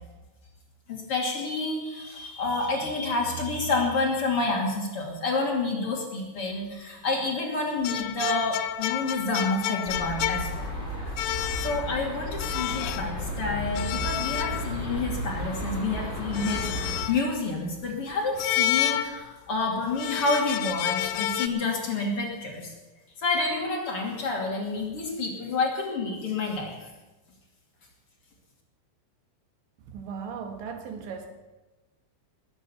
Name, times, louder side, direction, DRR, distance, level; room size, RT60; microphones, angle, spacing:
voice 1, 0.9-10.7 11.0-11.1 11.6-22.7 23.2-26.8, left 3 dB, 35° left, -1 dB, 2.6 m, -29 dB
sound 1, 7.8-10.8 11.2-12.0 12.4-13.1 13.8-15.0 16.3-17.4 18.4-19.5 19.9-21.5, left 13 dB, 85° left, 3.2 m, -30 dB
sound 2, 9.8-17.0, equal, 15° left, 2.6 m, -33 dB
voice 2, 29.9-31.3, right 6 dB, 70° right, 5 dB, 3.9 m, -37 dB
20.0 x 9.2 x 7.1 m, 1.2 s
omnidirectional pair, 5.4 m